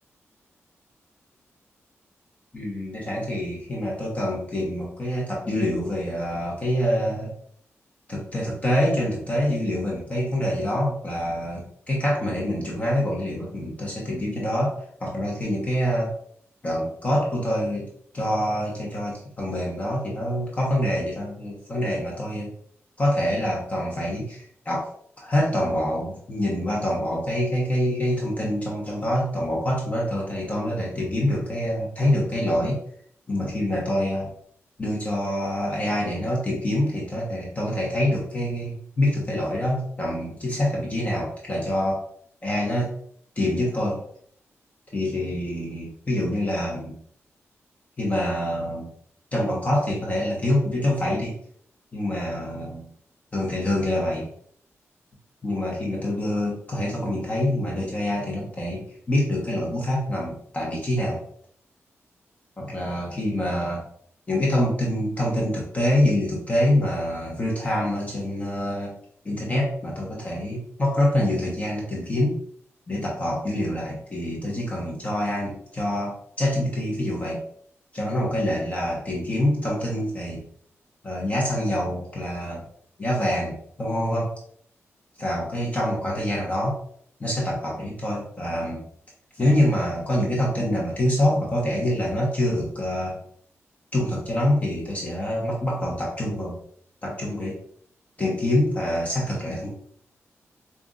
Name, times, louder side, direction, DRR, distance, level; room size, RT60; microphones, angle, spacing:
voice 1, 2.5-7.3 8.1-14.7 15.0-16.1 16.6-17.9 18.1-22.5 23.0-24.9 25.2-32.8 33.3-34.3 34.8-42.0 42.4-42.9 43.4-44.0 44.9-47.0 48.0-48.9 49.3-51.4 51.9-52.9 53.3-54.3 55.4-61.2 62.6-63.8 64.3-68.9 69.2-72.4 72.9-77.4 77.9-80.4 81.0-82.6 83.0-84.3 85.2-86.8 87.2-88.8 89.3-93.2 93.9-96.6 97.0-97.6 98.2-99.7, left 1 dB, 30° left, -3 dB, 1.0 m, -26 dB
5.1 x 2.5 x 2.4 m, 0.62 s
wide cardioid pair, 105°, 5 cm